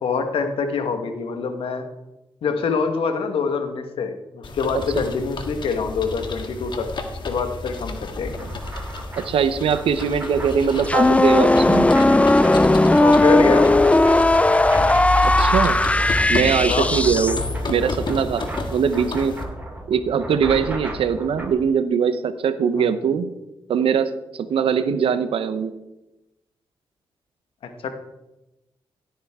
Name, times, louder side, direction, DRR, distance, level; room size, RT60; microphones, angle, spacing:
voice 1, 0.0-1.8 2.4-6.9 7.2-8.5 13.0-13.7 16.7-16.9 22.7-22.9 27.6-27.9, left 5 dB, 80° left, 7 dB, 1.4 m, -25 dB
sound 1, 4.4-19.4, left 2 dB, 60° left, 1.8 m, -30 dB
sound 2, 8.1-21.5, right 1 dB, 20° right, 5.3 m, -35 dB
voice 2, 9.2-11.9 15.2-15.8 16.3-19.3 19.9-23.3 23.7-24.1 24.4-25.7, right 7 dB, 80° right, 11 dB, 0.9 m, -21 dB
sound 3, 10.8-17.5, left 2 dB, 15° left, 0.4 m, -17 dB
16.5 x 9.0 x 3.7 m, 0.98 s
cardioid pair, 60°, 9 cm